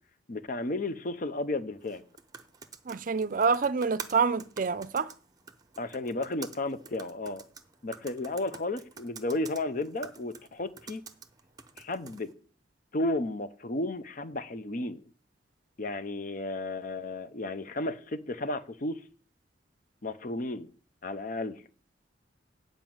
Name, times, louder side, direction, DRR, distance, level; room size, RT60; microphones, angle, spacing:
voice 1, 0.3-2.0 5.8-7.5 7.8-11.0 11.8-12.3 12.9-15.0 15.8-19.0 20.0-20.7 21.0-21.6, left 2 dB, 45° left, 0.7 m, -33 dB
sound 1, 1.8-12.3, right 5 dB, 20° right, 0.7 m, -48 dB
voice 2, 2.9-5.1, right 5 dB, 45° right, 0.5 m, -27 dB
9.1 x 5.1 x 7.7 m
head